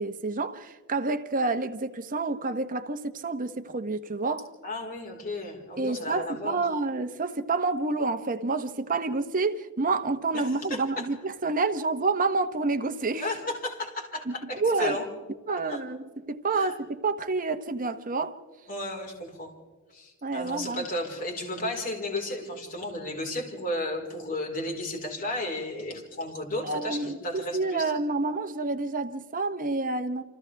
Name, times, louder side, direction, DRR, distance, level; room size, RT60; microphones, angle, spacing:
voice 1, 0.0-4.5 5.8-13.2 14.3-15.0 15.5-18.4 20.2-20.8 26.6-30.2, right 3 dB, 40° right, 1.0 m, -28 dB
voice 2, 4.6-6.6 10.3-11.1 13.2-15.1 15.5-15.8 16.5-16.7 18.7-19.5 19.9-27.9, left 1 dB, 40° left, 4.6 m, -34 dB
29.0 x 26.0 x 3.5 m
head